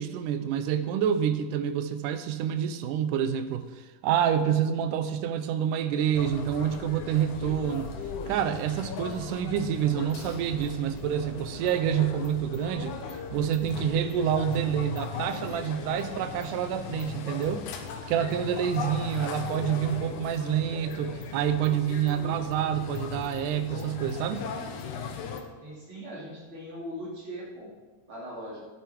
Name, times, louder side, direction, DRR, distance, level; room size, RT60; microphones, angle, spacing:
voice 1, 0.0-3.7 4.0-7.9 8.3-13.0 13.3-17.7 18.1-24.5, right 9 dB, 85° right, 11 dB, 2.3 m, -27 dB
sound 1, 6.1-25.4, left 6 dB, 75° left, 2.3 m, -38 dB
voice 2, 25.6-27.7 28.1-28.6, equal, 40° right, -6 dB, 3.6 m, -40 dB
12.0 x 9.1 x 4.5 m, 1.3 s
omnidirectional pair, 3.7 m